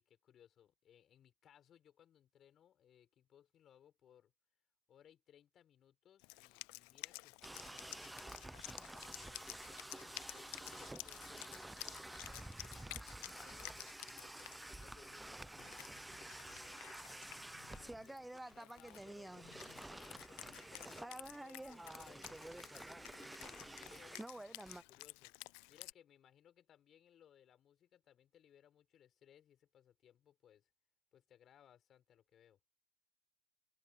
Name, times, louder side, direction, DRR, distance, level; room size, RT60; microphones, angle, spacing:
voice 1, 0.0-4.3 4.9-8.4 9.0-13.8 14.1-15.9 16.4-22.3 22.7-25.4 25.7-30.7 31.1-32.6, left 10 dB, 40° left, 6.9 m, -66 dB
Wind instrument woodwind instrument, 6.2-25.9, left 32 dB, 65° left, 0.4 m, -53 dB
sound 1, 7.4-24.8, right 1 dB, 5° right, 0.7 m, -50 dB
open air
hypercardioid pair, 80°, 0 cm